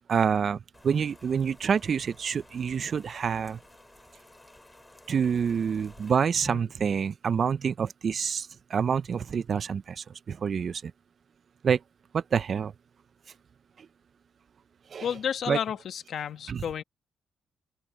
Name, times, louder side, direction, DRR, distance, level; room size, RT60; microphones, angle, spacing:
voice 1, 0.1-3.6 5.1-10.9 11.6-11.8 12.1-12.7 14.9-15.1 15.5-15.6 16.5-16.6, right 7 dB, 50° right, 0.5 m, -27 dB
Rain, 0.7-6.1, left 2 dB, 15° left, 5.9 m, -54 dB
voice 2, 15.0-16.8, left 8 dB, 65° left, 1.5 m, -32 dB
open air
cardioid pair, 90°, 0 cm